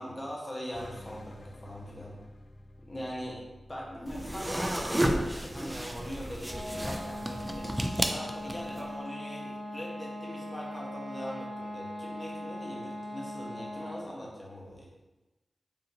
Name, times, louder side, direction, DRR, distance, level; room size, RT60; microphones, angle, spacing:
voice 1, 0.0-2.2 2.8-3.4 3.7-7.7 8.1-14.9, equal, 30° left, -4 dB, 1.1 m, -41 dB
sound 1, 0.7-5.6, left 1 dB, 65° left, 0.3 m, -51 dB
sound 2, 4.1-8.8, right 1 dB, 15° right, 0.3 m, -32 dB
sound 3, 6.4-14.1, left 1 dB, 45° right, 0.7 m, -40 dB
3.8 x 2.6 x 2.8 m, 1.1 s
cardioid pair, 55°, 0 cm